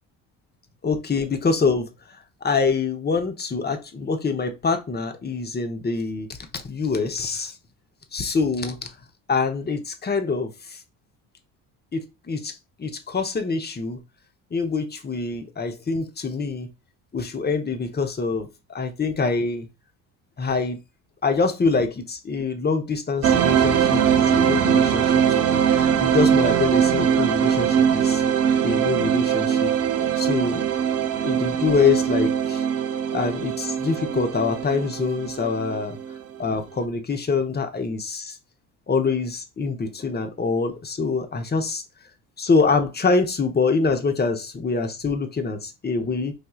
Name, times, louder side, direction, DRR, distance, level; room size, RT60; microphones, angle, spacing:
voice 1, 0.8-1.9 2.4-6.3 6.5-7.5 8.1-8.9 9.3-10.8 11.9-14.0 14.5-16.7 17.1-19.7 20.4-20.8 21.2-28.2 28.6-29.7 30.2-30.6 31.2-32.6 33.1-36.0 36.4-38.4 38.9-41.8 42.4-46.3, left 4 dB, 20° left, 0.8 m, -25 dB
sound 1, 23.2-36.2, right 8 dB, 35° right, 0.6 m, -21 dB
4.9 x 2.6 x 2.3 m
hypercardioid pair, 60°, 46 cm